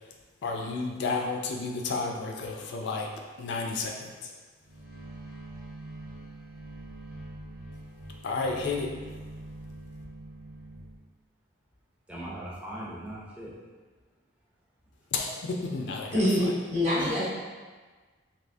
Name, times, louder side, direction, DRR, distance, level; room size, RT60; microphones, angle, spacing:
voice 1, 0.4-3.1 3.4-4.3 8.2-8.9 15.1-16.5, left 4 dB, 60° left, 0.4 m, -32 dB
sound 1, 4.6-11.0, right 1 dB, 80° right, 1.1 m, -44 dB
voice 2, 12.1-13.5 16.9-17.3, right 1 dB, 5° right, 0.5 m, -38 dB
voice 3, 16.1-17.3, left 1 dB, 35° right, 0.9 m, -25 dB
3.4 x 2.6 x 2.6 m
head